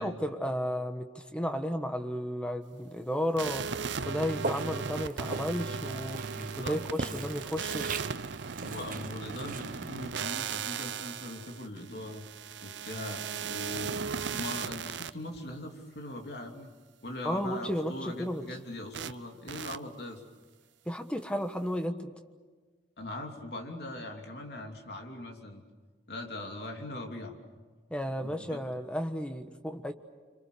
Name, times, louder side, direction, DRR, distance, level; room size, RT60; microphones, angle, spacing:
voice 1, 0.0-3.7 4.0-8.0 9.8-9.9 17.2-18.4 20.8-22.1 27.9-29.9, equal, 5° left, 7 dB, 1.3 m, -33 dB
sound 1, 3.4-15.1 18.9-19.1 19.5-19.8, right 6 dB, 75° right, 0.7 m, -37 dB
Walk footsteps, 4.4-11.5, right 4 dB, 45° right, 0.9 m, -41 dB
voice 2, 6.4-7.3 8.6-12.3 12.6-16.7 17.0-20.2 23.0-25.6 26.1-27.4 28.2-28.6, left 1 dB, 55° left, 2 dB, 3.1 m, -41 dB
26.5 x 26.0 x 6.8 m, 1.5 s
head